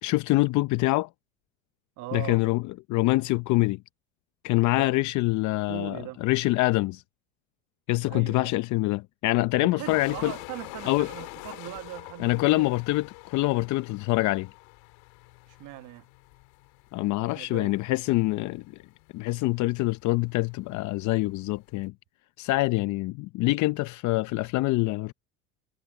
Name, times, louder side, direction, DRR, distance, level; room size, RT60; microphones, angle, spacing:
voice 1, 0.0-1.1 2.1-3.8 4.4-7.0 7.9-10.3 10.8-11.1 12.2-14.5 16.9-18.6 19.1-21.9 22.4-25.1, left 20 dB, 50° left, 0.8 m, -25 dB
voice 2, 2.0-2.4 4.7-4.9 5.7-6.3 8.1-8.5 9.6-12.7 15.5-16.0 17.4-17.7, right 18 dB, 50° right, 1.3 m, -40 dB
sound 1, 9.8-21.9, left 29 dB, 65° left, 3.8 m, -46 dB
supercardioid pair, 105°, 38 cm